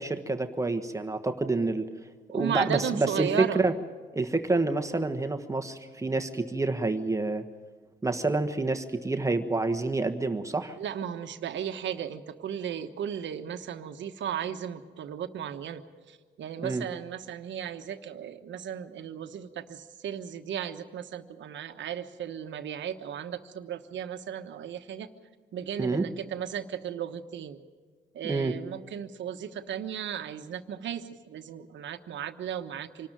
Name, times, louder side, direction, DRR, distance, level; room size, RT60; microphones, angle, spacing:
voice 1, 0.0-1.9 2.3-3.7 4.1-7.4 8.0-10.7 16.6-16.8 25.8-26.0 28.2-28.5, right 3 dB, 15° right, 6 dB, 1.3 m, -28 dB
voice 2, 2.3-3.7 10.8-25.1 25.5-27.6 28.1-33.1, right 9 dB, 70° right, 8 dB, 1.2 m, -35 dB
25.5 x 12.5 x 9.1 m, 1.5 s
cardioid pair, 90°, 20 cm